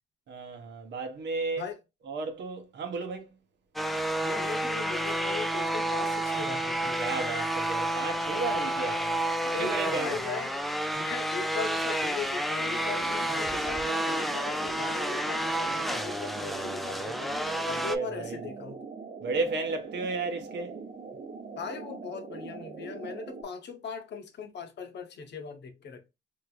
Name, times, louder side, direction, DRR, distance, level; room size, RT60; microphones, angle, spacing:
voice 1, 0.3-1.6 2.1-3.3 7.0-9.2 9.5-10.2 17.7-18.4 19.2-20.8, right 4 dB, 65° right, 1.0 m, -33 dB
sound 1, 3.8-18.0, right 1 dB, ahead, 0.4 m, -30 dB
voice 2, 4.2-7.0 9.6-10.6 10.9-18.8 21.6-26.1, left 6 dB, 60° left, 0.9 m, -39 dB
sound 2, 12.6-23.4, right 5 dB, 40° right, 0.8 m, -42 dB
3.2 x 2.8 x 2.3 m
cardioid pair, 90°, 20 cm